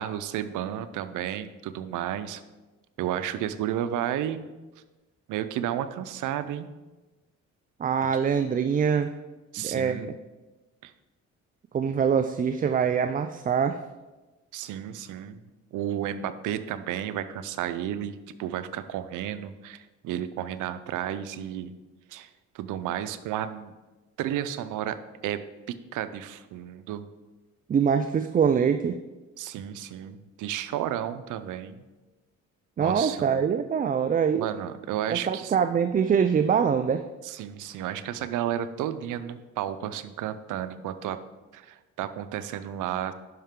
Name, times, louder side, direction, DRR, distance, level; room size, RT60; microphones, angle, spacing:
voice 1, 0.0-2.4 3.0-4.5 5.3-6.7 9.5-10.1 10.8-10.9 14.5-15.4 15.7-21.7 22.1-22.3 22.5-23.7 24.2-25.0 25.2-25.4 25.9-27.0 29.4-31.8 32.8-33.4 34.4-35.5 37.2-41.2 41.5-43.1, right 11 dB, 85° right, 12 dB, 0.6 m, -32 dB
voice 2, 7.8-9.1 9.6-10.1 11.7-13.8 27.7-29.0 32.8-34.5 35.1-37.0, right 7 dB, 30° right, 9 dB, 0.4 m, -24 dB
11.0 x 5.7 x 3.7 m, 1.2 s
cardioid pair, 90°, 30 cm